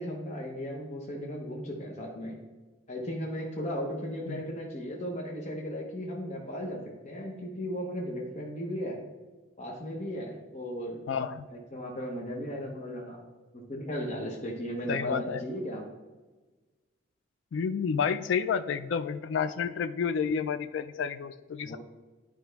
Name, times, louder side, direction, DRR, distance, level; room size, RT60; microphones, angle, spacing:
voice 1, 0.0-2.4 2.9-9.0 9.6-11.0 11.5-13.2 13.5-15.8 21.6-21.8, equal, 35° left, -1 dB, 0.9 m, -36 dB
voice 2, 11.1-11.4 14.9-15.4 17.5-21.8, left 6 dB, 70° left, 12 dB, 0.3 m, -30 dB
9.7 x 5.0 x 3.4 m, 1.2 s
head